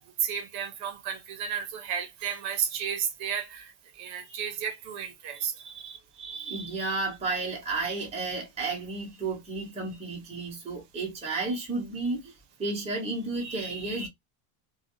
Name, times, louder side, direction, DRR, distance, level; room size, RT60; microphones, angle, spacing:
voice 1, 0.2-3.7 4.0-5.5, right 8 dB, 55° right, 0.8 m, -32 dB
voice 2, 5.3-12.3 12.6-14.1, right 3 dB, 15° right, 0.9 m, -33 dB
3.2 x 2.3 x 2.6 m
cardioid pair, 165°, 46 cm